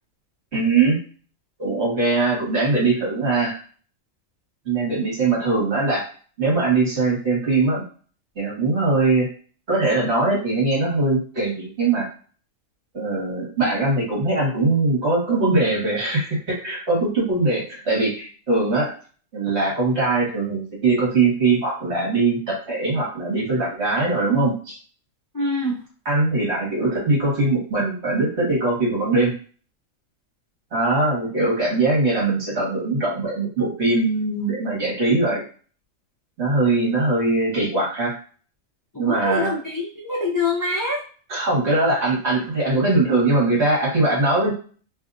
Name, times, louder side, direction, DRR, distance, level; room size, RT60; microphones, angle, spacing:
voice 1, 0.5-1.0 1.6-3.6 4.7-6.1 6.4-7.8 8.4-9.3 9.7-12.1 12.9-18.9 19.3-24.8 26.1-29.3 30.7-35.4 36.4-38.2 39.0-39.5 41.3-44.5, right 3 dB, 55° right, -5 dB, 1.8 m, -21 dB
voice 2, 25.3-25.8 38.9-41.0, left 2 dB, 25° left, -3 dB, 0.4 m, -25 dB
3.2 x 2.7 x 2.5 m, 0.39 s
omnidirectional pair, 1.4 m